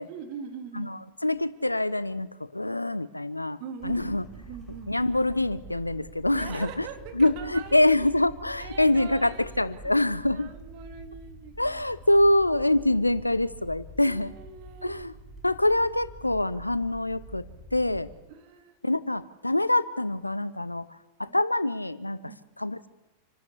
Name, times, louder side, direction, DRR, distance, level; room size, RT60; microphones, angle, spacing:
voice 1, 0.1-1.0 3.6-4.9 6.3-8.0 8.6-9.6 9.8-9.9 10.3-11.8 14.0-15.0 18.3-18.8 21.3-21.4 22.3-22.4, right 7 dB, 45° right, 6 dB, 2.6 m, -42 dB
voice 2, 0.7-3.6 3.8-4.2 4.9-6.9 7.1-10.5 11.6-14.3 14.8-15.1 15.4-17.4 17.7-18.1 18.8-22.3 22.6-22.9, left 1 dB, 85° left, 17 dB, 0.7 m, -25 dB
sound 1, 3.8-18.2, right 1 dB, 10° left, 7.7 m, -46 dB
27.5 x 12.5 x 8.4 m, 1.1 s
figure-of-eight pair, 90°, 0 cm